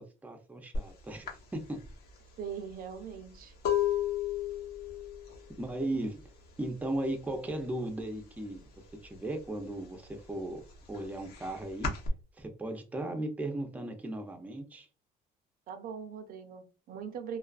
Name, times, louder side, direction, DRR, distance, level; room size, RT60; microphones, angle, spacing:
voice 1, 0.0-1.8 5.6-6.2 6.6-8.6 9.0-10.6 10.9-11.9 12.4-14.9, right 1 dB, 10° right, 0.5 m, -36 dB
sound 1, 0.7-0.9 1.3-6.9 7.2-7.7 8.0-9.1 9.5-12.1, left 9 dB, 65° left, 0.9 m, -34 dB
voice 2, 2.4-3.5 15.7-17.4, right 7 dB, 60° right, 0.5 m, -41 dB
2.3 x 2.3 x 2.3 m
cardioid pair, 110°, 17 cm